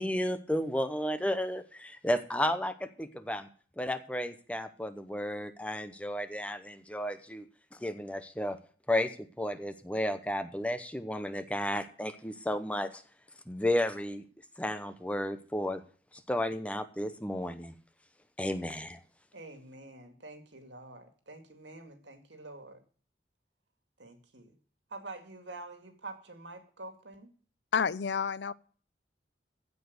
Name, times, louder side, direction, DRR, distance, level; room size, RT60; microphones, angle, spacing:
voice 1, 0.0-3.5 3.8-7.4 7.8-8.6 8.9-13.0 13.5-14.2 14.6-15.8 16.3-17.7 18.4-19.0, left 1 dB, 5° left, 0.9 m, -33 dB
voice 2, 19.3-22.8 24.0-24.6 24.9-27.3, right 2 dB, 90° right, 2.3 m, -47 dB
voice 3, 27.7-28.5, left 6 dB, 75° left, 0.5 m, -29 dB
15.5 x 5.3 x 8.0 m
head